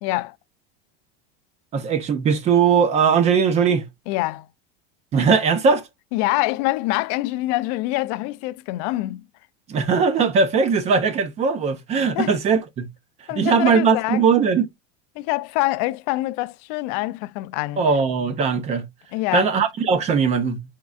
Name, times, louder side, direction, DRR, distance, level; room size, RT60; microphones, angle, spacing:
voice 1, 0.0-0.3 4.1-4.5 6.1-9.2 12.1-12.3 13.3-14.2 15.2-17.8 19.1-19.5, left 19 dB, 45° left, 0.4 m, -25 dB
voice 2, 1.7-3.9 5.1-5.8 9.7-12.9 13.4-14.7 17.8-18.8 19.3-20.6, right 5 dB, 20° right, 0.6 m, -19 dB
5.2 x 3.6 x 2.3 m
supercardioid pair, 165°, 30 cm